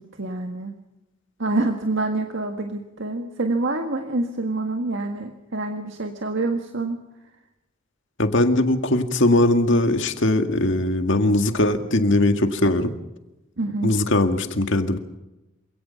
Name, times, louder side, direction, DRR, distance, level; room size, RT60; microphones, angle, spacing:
voice 1, 0.2-0.7 1.4-7.0 13.6-14.0, right 2 dB, 65° right, 4 dB, 1.8 m, -26 dB
voice 2, 8.2-12.9 13.8-15.0, left 1 dB, 65° left, 6 dB, 2.0 m, -20 dB
27.0 x 18.0 x 5.8 m, 0.98 s
head